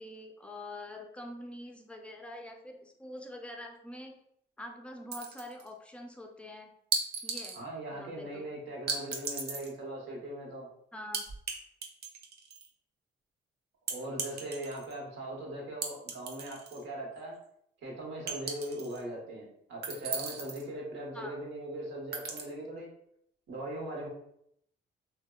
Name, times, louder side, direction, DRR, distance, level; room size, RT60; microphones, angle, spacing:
voice 1, 0.0-4.1 4.6-6.7 7.2-7.7 7.9-8.5 10.9-11.2 21.1-21.4, left 1 dB, 5° left, 3 dB, 0.4 m, -45 dB
sound 1, 5.1-5.7 6.9-7.6 8.9-9.7 11.1-11.5 11.8-12.7 13.9-14.9 15.8-16.8 17.2-17.3 18.3-19.0 19.8-20.6 22.1-22.4, right 4 dB, 55° right, 0.6 m, -36 dB
voice 2, 7.5-10.7 13.9-17.4 17.8-22.9 23.5-24.1, right 1 dB, 75° right, -2 dB, 0.9 m, -40 dB
2.7 x 2.0 x 2.2 m, 0.72 s
cardioid pair, 90°, 20 cm